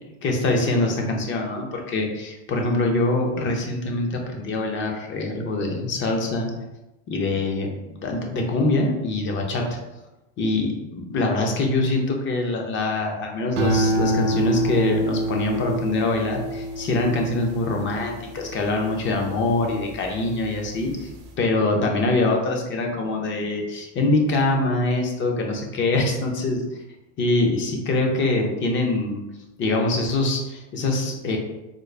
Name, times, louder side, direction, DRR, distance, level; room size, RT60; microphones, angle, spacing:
voice 1, 0.2-6.5 7.1-7.7 8.0-9.8 10.4-21.1 21.4-26.6 27.2-29.2 29.6-31.4, left 2 dB, 30° left, 2 dB, 0.7 m, -24 dB
sound 1, 13.5-20.1 20.5-21.0, right 1 dB, 50° right, 0.8 m, -27 dB
3.8 x 2.1 x 3.3 m, 0.98 s
supercardioid pair, 125°, 36 cm